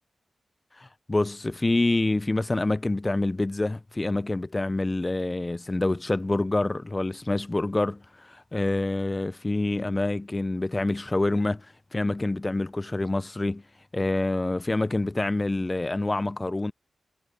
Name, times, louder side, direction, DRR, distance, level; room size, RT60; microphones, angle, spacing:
voice 1, 0.8-13.6 13.9-16.7, left 2 dB, 25° left, 0.3 m, -27 dB
cardioid pair, 70°, 0 cm